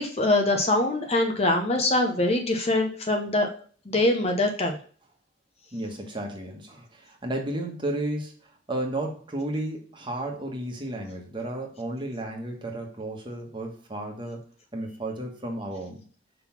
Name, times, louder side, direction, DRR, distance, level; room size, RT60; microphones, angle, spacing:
voice 1, 0.0-3.5 3.9-4.8, left 2 dB, 30° left, 4 dB, 0.8 m, -23 dB
voice 2, 5.7-14.5 14.7-16.0, right 1 dB, 25° right, 1 dB, 1.3 m, -33 dB
5.8 x 3.9 x 5.9 m, 0.42 s
head